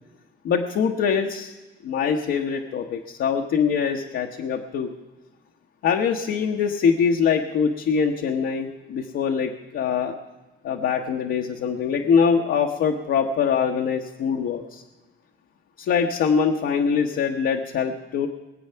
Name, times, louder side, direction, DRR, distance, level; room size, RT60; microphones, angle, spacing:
voice 1, 0.4-1.5 1.8-4.9 5.8-10.1 10.6-14.8 15.8-18.3, left 6 dB, 75° left, 1 dB, 1.1 m, -23 dB
22.0 x 8.0 x 5.7 m, 1.2 s
cardioid pair, 90°, 20 cm